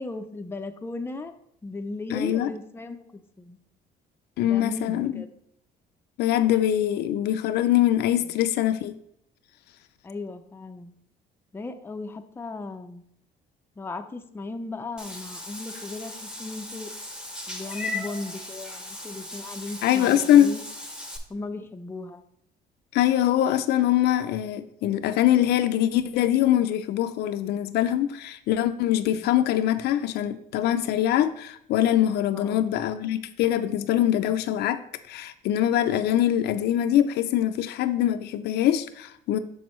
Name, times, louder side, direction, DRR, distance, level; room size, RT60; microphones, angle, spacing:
voice 1, 0.0-1.3 1.6-3.6 4.4-5.3 10.0-10.9 11.5-13.0 13.8-16.9 17.5-20.6 21.3-22.2 32.3-32.7, left 3 dB, 15° left, 6 dB, 0.5 m, -36 dB
voice 2, 2.1-2.5 4.4-5.2 6.2-9.0 19.8-20.5 22.9-34.8 35.1-39.4, left 12 dB, 75° left, 10 dB, 0.5 m, -23 dB
Meow / Water / Bathtub (filling or washing), 15.0-21.2, left 2 dB, 5° right, 0.9 m, -37 dB
6.4 x 6.1 x 3.1 m, 0.71 s
cardioid pair, 110°, 17 cm